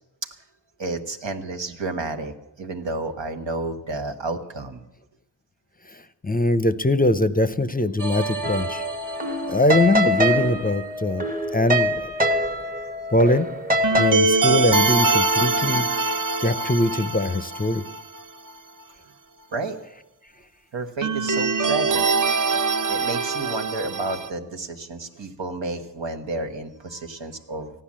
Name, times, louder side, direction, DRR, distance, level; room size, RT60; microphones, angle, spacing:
voice 1, 0.8-4.8 13.9-14.3 19.5-19.8 20.7-22.0 22.5-27.7, right 3 dB, 90° right, 5 dB, 1.3 m, -31 dB
voice 2, 5.9-8.8 9.5-12.1 13.1-13.5 14.0-17.8, left 1 dB, 20° left, 13 dB, 0.5 m, -22 dB
sound 1, 8.0-9.8 13.8-18.2 18.5-18.6 21.0-24.3, right 3 dB, 45° right, 0.7 m, -24 dB
sound 2, 8.4-14.1, equal, 20° right, 0.9 m, -24 dB
14.5 x 10.0 x 7.4 m, 0.93 s
wide cardioid pair, 65°, 43 cm